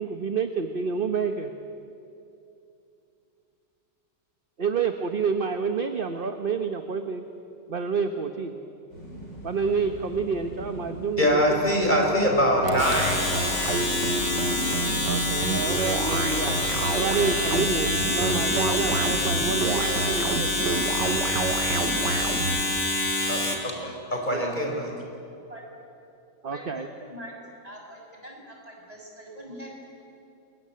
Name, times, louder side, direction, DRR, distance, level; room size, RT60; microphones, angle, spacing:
voice 1, 0.0-1.5 4.6-7.2 7.7-8.5 9.4-11.6 15.0-16.5 16.9-20.7 24.3-24.6 26.4-26.9, right 5 dB, 35° right, 7 dB, 1.1 m, -28 dB
sound 1, 8.9-19.4, equal, 80° left, 8.6 m, -41 dB
voice 2, 11.2-13.1 23.3-24.9, equal, 25° left, 1 dB, 4.6 m, -23 dB
sound 2, 12.6-22.6, right 3 dB, 75° right, 2.2 m, -29 dB
Domestic sounds home sounds, 12.7-23.7, left 2 dB, 40° left, 3.1 m, -27 dB
voice 3, 26.5-27.3 27.6-29.9, equal, 20° right, -1 dB, 6.5 m, -43 dB
29.0 x 22.0 x 8.7 m, 2.7 s
omnidirectional pair, 1.9 m